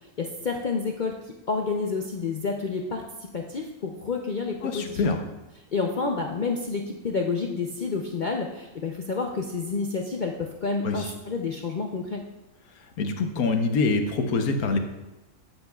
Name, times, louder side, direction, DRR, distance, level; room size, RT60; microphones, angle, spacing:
voice 1, 0.2-1.2 1.5-5.0 5.7-12.3, left 4 dB, 60° left, 1 dB, 0.5 m, -29 dB
voice 2, 4.6-5.2 10.8-11.1 12.8-14.8, left 3 dB, 75° left, 5 dB, 1.4 m, -25 dB
13.5 x 7.8 x 2.4 m, 1.0 s
omnidirectional pair, 1.6 m